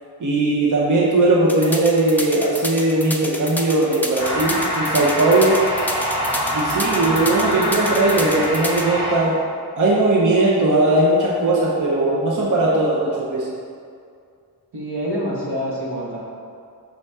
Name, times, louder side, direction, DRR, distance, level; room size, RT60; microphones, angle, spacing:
voice 1, 0.2-5.6 6.5-9.4 9.7-13.5, right 2 dB, 50° right, -5 dB, 0.8 m, -18 dB
sound 1, 1.5-8.8, left 1 dB, 5° left, 0.4 m, -29 dB
sound 2, 4.2-9.2, equal, 10° right, 1.2 m, -24 dB
voice 2, 14.7-16.2, equal, 80° right, -4 dB, 1.4 m, -26 dB
5.9 x 5.5 x 3.5 m, 2.3 s
wide cardioid pair, 175°, 39 cm